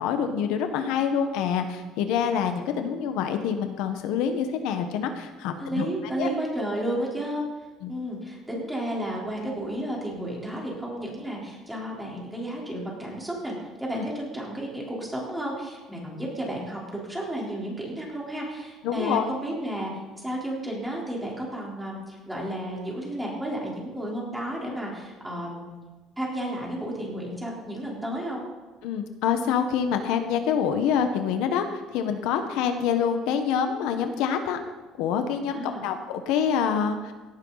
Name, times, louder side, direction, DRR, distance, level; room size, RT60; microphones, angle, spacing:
voice 1, 0.0-5.9 6.2-6.3 7.8-7.9 13.9-14.1 18.8-19.3 28.8-34.6 35.0-37.1, left 7 dB, 80° left, 7 dB, 1.3 m, -26 dB
voice 2, 5.6-7.4 7.9-13.5 13.8-19.9 20.2-25.7 26.2-28.5 35.5-35.8, right 1 dB, 5° right, -3 dB, 3.9 m, -32 dB
17.5 x 11.5 x 4.1 m, 1.3 s
cardioid pair, 145°, 0 cm